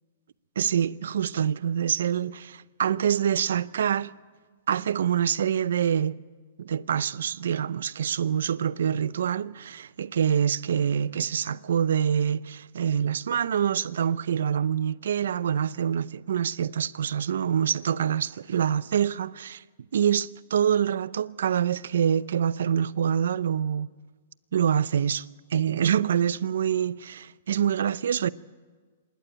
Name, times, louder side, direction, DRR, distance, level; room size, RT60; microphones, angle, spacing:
voice 1, 0.6-4.1 4.7-6.2 6.6-19.6 19.9-23.9 24.5-25.3 25.5-28.3, right 8 dB, 75° right, 0.6 m, -26 dB
27.0 x 11.5 x 8.9 m
hypercardioid pair, 135°, 0 cm